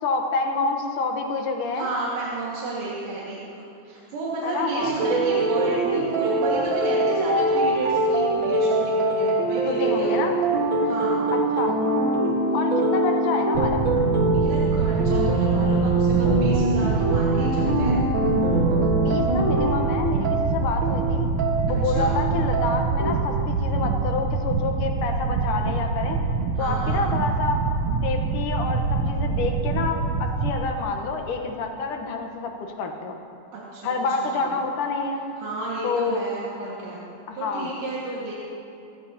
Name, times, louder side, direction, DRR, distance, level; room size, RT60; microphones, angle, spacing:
voice 1, 0.0-1.9 4.4-5.3 9.7-10.4 11.3-11.7 12.5-13.8 18.9-21.3 21.7-26.2 26.6-27.6 28.0-33.2 33.8-35.2 35.8-36.2 37.3-37.7, left 4 dB, 80° left, 3 dB, 2.7 m, -28 dB
voice 2, 1.7-3.4 3.8-10.3 10.8-11.3 14.3-18.0 21.8-22.2 26.5-27.0 33.5-33.9 34.2-34.5 35.4-37.0 37.4-38.3, right 2 dB, 90° right, -7 dB, 3.5 m, -32 dB
sound 1, 4.8-23.1, right 2 dB, 45° right, 1.9 m, -23 dB
sound 2, 13.5-30.5, right 4 dB, 70° right, 1.7 m, -25 dB
24.5 x 13.5 x 2.9 m, 2.9 s
omnidirectional pair, 3.7 m